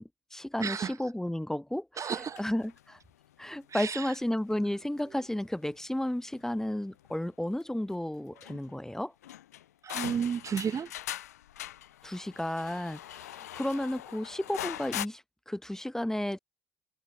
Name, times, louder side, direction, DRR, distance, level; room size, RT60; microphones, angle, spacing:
voice 1, 0.0-2.1 2.4-3.0 3.4-9.1 12.0-16.4, left 1 dB, 5° left, 1.8 m, -33 dB
voice 2, 0.6-1.0 2.0-2.4 3.7-4.1 9.8-10.9, right 7 dB, 40° right, 1.0 m, -32 dB
sound 1, 2.1-3.5 4.0-4.2 4.5-5.0 5.8-6.6 6.9-7.1 7.6-7.7 7.9-8.0 8.3-8.9 9.2-15.0, left 13 dB, 80° left, 0.4 m, -41 dB
figure-of-eight pair, 55°, 8 cm